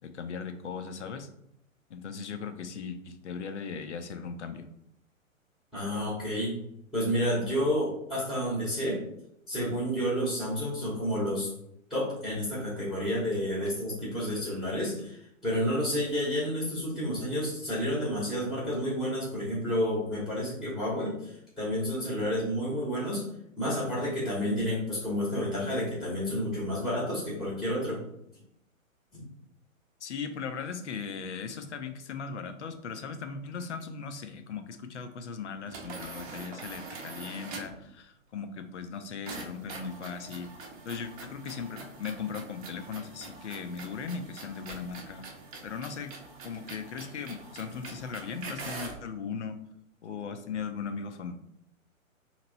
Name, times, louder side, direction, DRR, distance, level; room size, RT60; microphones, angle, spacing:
voice 1, 0.0-1.3 1.9-4.7 30.0-40.5 40.8-45.3 45.6-46.1 46.4-49.6 50.0-51.4, left 5 dB, 55° left, 8 dB, 0.6 m, -38 dB
voice 2, 5.7-6.5 6.9-9.0 9.5-11.5 11.9-23.2 23.6-28.0 29.1-29.2, equal, ahead, -6 dB, 0.9 m, -30 dB
sound 1, 35.7-37.8 39.3-49.1, right 3 dB, 25° right, 0.7 m, -44 dB
3.0 x 2.9 x 3.9 m, 0.77 s
figure-of-eight pair, 125°, 41 cm